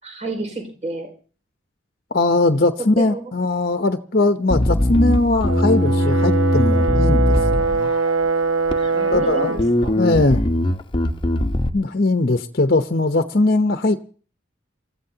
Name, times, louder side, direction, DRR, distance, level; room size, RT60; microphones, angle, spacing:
voice 1, 0.0-1.1 3.0-3.3 8.9-10.0, right 2 dB, 35° right, 5.2 m, -30 dB
voice 2, 2.1-7.2 7.5-7.9 9.1-9.7 10.0-10.4 11.7-14.0, left 2 dB, 45° left, 0.9 m, -20 dB
Bass guitar, 4.5-8.1 8.7-9.2 9.6-11.7, left 1 dB, 25° left, 1.0 m, -20 dB
Brass instrument, 5.5-9.7, right 4 dB, 80° right, 1.3 m, -22 dB
28.0 x 15.0 x 2.9 m
head